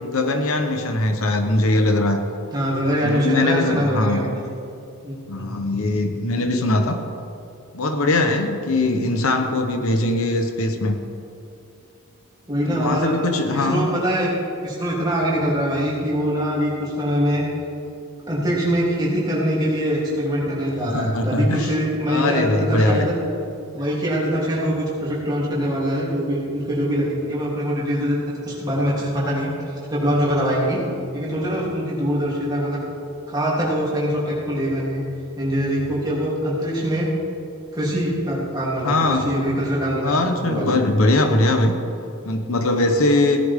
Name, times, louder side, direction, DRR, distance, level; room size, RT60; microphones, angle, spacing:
voice 1, 0.0-2.2 3.0-4.2 5.3-7.0 7.7-11.0 12.7-13.9 20.8-21.7 22.1-23.1 38.8-39.3 39.9-41.7 42.2-43.4, left 2 dB, 75° left, 5 dB, 1.0 m, -21 dB
voice 2, 2.5-4.4 5.0-5.5 12.5-13.1 13.6-14.3 14.6-17.5 18.3-23.1 23.7-29.5 29.9-30.8 31.1-32.8 33.3-35.0 35.4-37.1 37.7-40.2 40.4-40.8, equal, 20° right, -7 dB, 3.1 m, -23 dB
16.5 x 11.0 x 3.7 m, 2.6 s
head